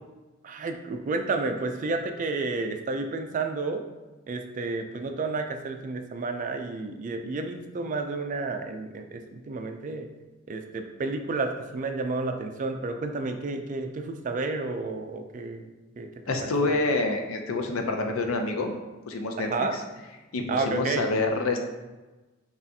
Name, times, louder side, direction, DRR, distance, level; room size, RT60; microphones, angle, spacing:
voice 1, 0.4-3.8 4.3-10.1 10.5-15.7 16.0-16.1 16.4-16.8 19.4-19.7 20.5-21.1, right 3 dB, 40° right, 6 dB, 0.3 m, -31 dB
voice 2, 16.3-18.7 19.1-19.8 20.3-21.6, left 3 dB, 80° left, 4 dB, 0.5 m, -27 dB
5.6 x 2.4 x 2.7 m, 1.2 s
head